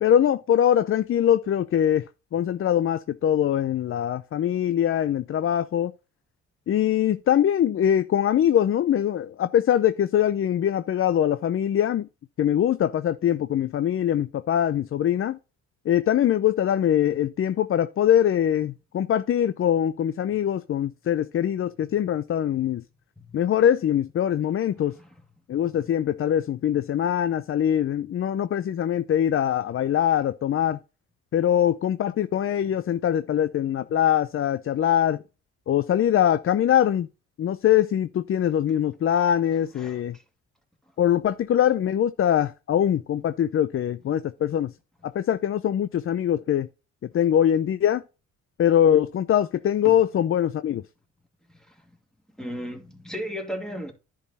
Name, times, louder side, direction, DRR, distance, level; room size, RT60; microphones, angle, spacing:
voice 1, 0.0-2.0 2.3-5.9 6.7-12.1 12.4-15.4 15.9-22.8 23.3-24.9 25.5-30.8 31.3-35.2 35.7-37.1 37.4-40.2 41.0-44.7 45.0-46.7 47.1-48.0 48.6-50.8, left 10 dB, 45° left, 0.5 m, -22 dB
voice 2, 52.4-53.9, equal, ahead, 2.2 m, -35 dB
10.5 x 4.6 x 4.2 m
cardioid pair, 90°, 30 cm